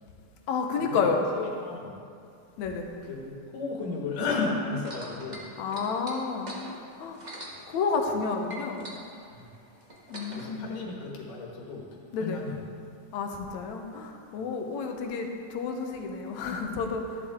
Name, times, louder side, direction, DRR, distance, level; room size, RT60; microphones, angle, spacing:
voice 1, 0.5-1.2 2.6-2.9 5.6-6.6 7.0-7.2 7.7-8.9 10.1-10.7 12.1-12.4 13.1-17.2, left 5 dB, 70° left, 3 dB, 2.1 m, -30 dB
voice 2, 1.3-1.9 3.0-5.4 9.3-9.4 10.3-12.6, left 4 dB, 85° left, -1 dB, 3.2 m, -34 dB
sound 1, 4.8-8.2 8.5-10.5 11.3-11.4, right 1 dB, 85° right, 0.3 m, -43 dB
13.5 x 11.0 x 3.6 m, 2.4 s
omnidirectional pair, 3.7 m